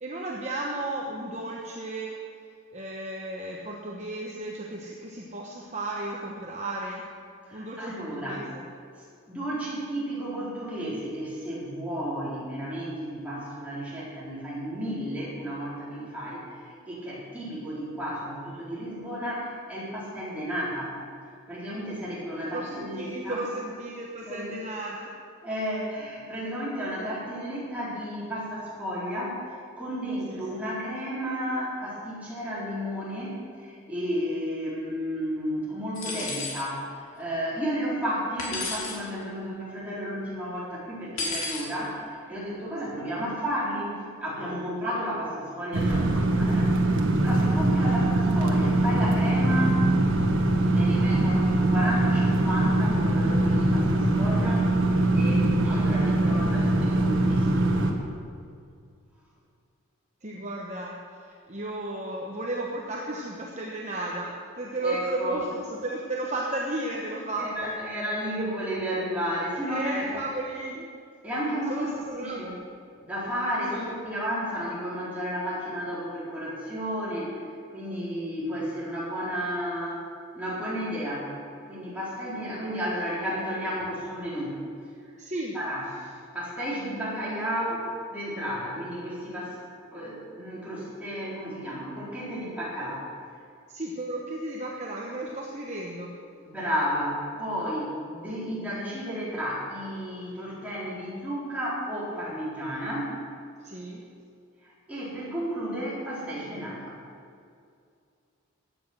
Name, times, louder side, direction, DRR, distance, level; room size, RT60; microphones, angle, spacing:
voice 1, 0.0-2.2 2.7-7.1 7.5-8.6 22.4-25.1 30.3-30.6 42.8-43.0 47.9-48.0 60.2-67.7 69.7-70.9 71.7-72.5 73.7-73.8 85.2-85.6 93.7-96.2 103.6-104.1, right 2 dB, 30° right, -2 dB, 1.1 m, -34 dB
voice 2, 7.5-8.5 9.3-21.0 21.5-23.4 24.2-24.5 25.4-46.7 47.2-49.8 50.7-54.7 55.1-57.7 64.8-65.5 67.4-70.2 71.2-72.6 73.0-80.1 80.3-81.3 81.7-84.6 85.5-85.9 86.3-89.6 89.9-93.0 96.4-103.2 104.6-107.0, equal, 5° right, -8 dB, 4.3 m, -32 dB
sound 1, 36.0-36.6 38.4-39.0 41.2-41.7, left 3 dB, 70° left, 3.1 m, -32 dB
sound 2, 45.7-57.9, right 1 dB, 60° right, 1.5 m, -22 dB
15.5 x 9.7 x 6.2 m, 2.3 s
head